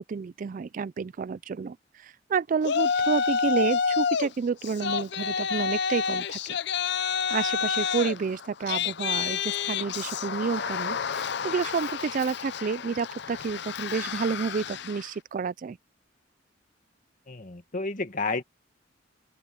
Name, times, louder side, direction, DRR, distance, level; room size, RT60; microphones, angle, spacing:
voice 1, 0.0-6.6 7.3-15.8, right 5 dB, 45° right, 0.3 m, -30 dB
Yell, 2.6-4.3 4.6-15.1, left 6 dB, 60° left, 0.6 m, -29 dB
voice 2, 17.3-18.4, left 3 dB, 45° left, 2.0 m, -31 dB
open air
head